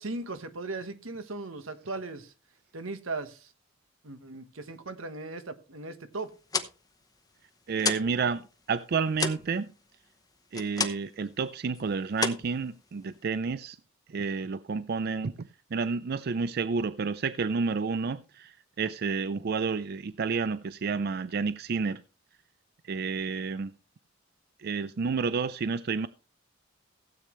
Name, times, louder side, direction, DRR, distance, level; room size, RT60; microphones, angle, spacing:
voice 1, 0.0-2.3 2.7-3.5 4.0-6.3, right 3 dB, 85° right, 1.4 m, -38 dB
Giro de boton, 6.3-8.2 8.5-11.2 11.5-11.8 12.1-13.2, left 5 dB, 20° left, 0.8 m, -33 dB
voice 2, 7.7-9.7 10.5-13.8 14.1-22.0 22.8-23.7 24.6-26.1, right 5 dB, 50° right, 0.4 m, -30 dB
16.0 x 8.4 x 3.1 m
head